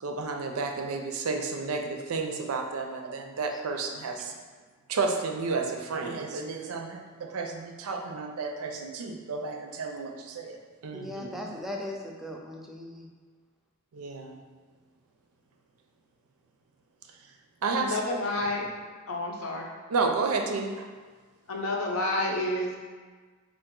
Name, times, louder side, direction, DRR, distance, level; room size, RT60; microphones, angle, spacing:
voice 1, 0.0-4.3 4.9-11.4 13.9-14.4 17.6-18.0 19.9-20.9, right 4 dB, 85° right, 4 dB, 0.4 m, -31 dB
voice 2, 10.9-13.1, left 1 dB, ahead, -1 dB, 0.4 m, -38 dB
voice 3, 17.7-18.7 19.1-19.7 21.5-22.8, left 1 dB, 75° left, -1 dB, 0.7 m, -29 dB
3.8 x 2.5 x 3.6 m, 1.5 s
head